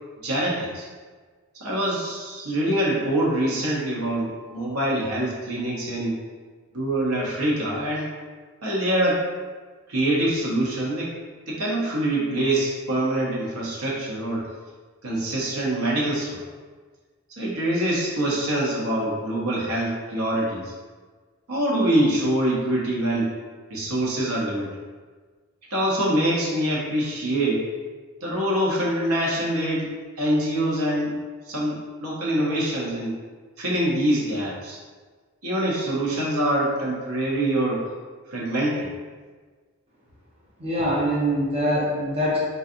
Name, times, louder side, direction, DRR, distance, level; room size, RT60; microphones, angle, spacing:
voice 1, 0.2-0.9 1.5-6.2 6.7-8.1 8.6-9.3 9.9-11.1 11.5-14.4 15.0-16.4 17.3-20.7 21.5-23.3 23.7-24.7 25.7-27.7 28.2-29.9 30.2-31.2 31.5-33.1 33.6-34.8 35.4-37.9 38.3-38.9, right 1 dB, 80° right, -4 dB, 0.8 m, -24 dB
voice 2, 40.6-42.4, equal, 25° right, -7 dB, 0.7 m, -23 dB
3.8 x 2.6 x 2.5 m, 1.4 s
head